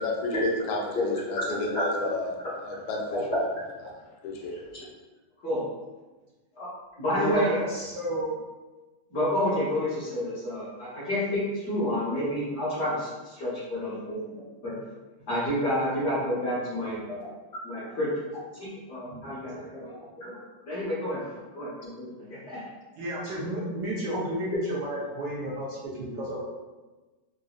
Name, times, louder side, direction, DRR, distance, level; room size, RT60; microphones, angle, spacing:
voice 1, 0.0-2.3 2.6-3.5 4.2-4.7, left 2 dB, 85° left, 0 dB, 1.5 m, -31 dB
voice 2, 1.5-1.8 4.7-4.8 5.4-5.6 6.6-6.7 7.0-7.6 9.1-14.2 14.6-14.8 15.3-17.3 17.6-18.1 18.6-19.8 20.2-20.3 20.6-22.7, left 1 dB, 40° left, -9 dB, 1.1 m, -29 dB
voice 3, 7.2-8.3 16.8-16.9 17.9-18.0 18.5-18.6 19.1-20.0 23.0-26.4, right 1 dB, 70° right, -5 dB, 1.1 m, -33 dB
3.9 x 2.5 x 2.4 m, 1.2 s
omnidirectional pair, 2.2 m